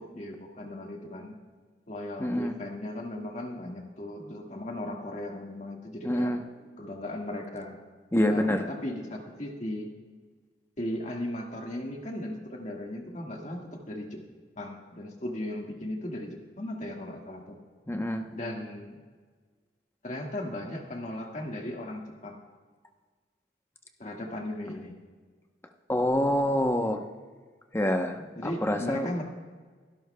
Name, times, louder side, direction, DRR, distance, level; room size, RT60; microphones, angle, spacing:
voice 1, 0.0-1.3 1.9-6.3 6.8-7.8 8.3-9.9 10.8-14.2 14.6-17.6 18.3-19.0 20.0-22.4 24.0-25.0 28.3-29.2, left 1 dB, 45° left, 1 dB, 1.7 m, -37 dB
voice 2, 2.2-2.5 6.0-6.4 8.1-8.7 17.9-18.2 25.9-27.0 27.7-29.1, left 1 dB, 15° left, 5 dB, 0.8 m, -26 dB
23.5 x 12.0 x 2.2 m, 1.5 s
head